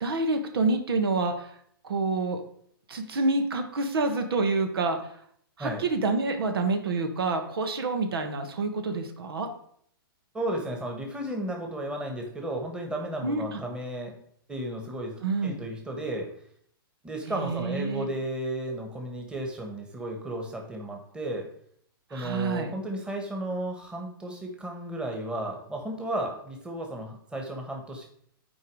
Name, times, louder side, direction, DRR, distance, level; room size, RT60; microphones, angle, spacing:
voice 1, 0.0-1.5 1.8-2.4 2.9-5.0 5.6-9.5 13.2-13.6 15.2-15.6 17.3-18.1 22.1-22.7, right 3 dB, 80° right, 6 dB, 1.4 m, -27 dB
voice 2, 10.3-14.2 14.5-16.3 17.0-21.5 22.1-28.1, right 1 dB, 10° right, 1 dB, 1.5 m, -34 dB
9.4 x 4.7 x 4.8 m, 0.65 s
hypercardioid pair, 140°, 12 cm